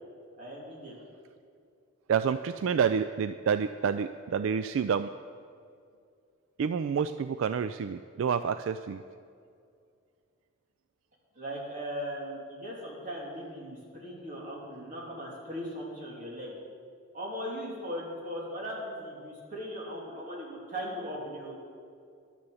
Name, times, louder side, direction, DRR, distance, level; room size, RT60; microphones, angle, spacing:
voice 1, 0.4-0.9 11.3-16.5 17.1-21.6, equal, 35° right, -4 dB, 2.9 m, -38 dB
voice 2, 2.1-5.1 6.6-9.0, right 7 dB, 70° right, 11 dB, 0.3 m, -28 dB
11.5 x 9.7 x 7.1 m, 2.3 s
head